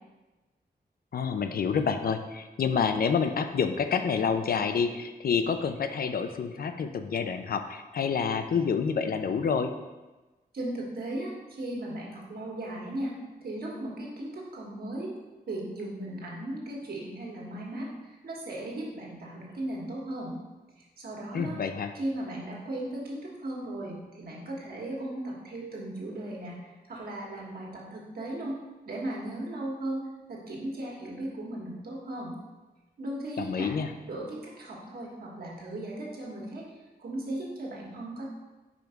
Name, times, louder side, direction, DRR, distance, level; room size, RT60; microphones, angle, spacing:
voice 1, 1.1-9.7 21.3-21.9 33.4-33.9, left 6 dB, 65° left, 8 dB, 0.5 m, -28 dB
voice 2, 10.5-13.1 13.4-15.1 15.5-20.4 20.8-21.6 21.9-28.5 28.8-30.0 30.3-32.3 33.0-33.7 34.1-36.7 37.0-38.3, right 1 dB, 70° right, -3 dB, 1.5 m, -37 dB
5.0 x 4.6 x 5.1 m, 1.2 s
wide cardioid pair, 180°, 16 cm